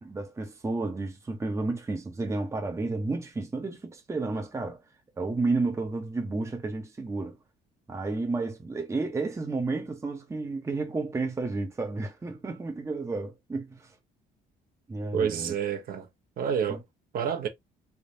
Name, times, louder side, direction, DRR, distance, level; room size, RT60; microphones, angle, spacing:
voice 1, 0.0-4.8 5.2-7.4 7.9-13.9 14.9-15.5 16.7-16.8, right 3 dB, 15° right, 0.9 m, -31 dB
voice 2, 15.1-16.1 16.4-16.8 17.1-17.5, right 7 dB, 60° right, 1.1 m, -28 dB
3.6 x 3.1 x 2.7 m
cardioid pair, 110°, 17 cm